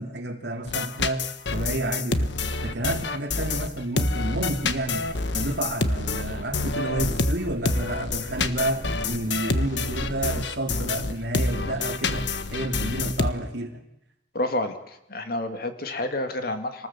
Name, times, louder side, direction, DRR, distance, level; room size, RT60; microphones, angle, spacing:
voice 1, 0.0-2.3 2.6-13.8, right 1 dB, 65° right, 4 dB, 3.1 m, -30 dB
sound 1, 0.6-13.3, left 3 dB, 75° left, 1.4 m, -27 dB
sound 2, 4.5-10.3, right 1 dB, 45° right, 1.6 m, -40 dB
voice 2, 14.3-16.9, left 1 dB, 55° left, 7 dB, 2.4 m, -29 dB
26.5 x 19.5 x 7.5 m, 0.85 s
head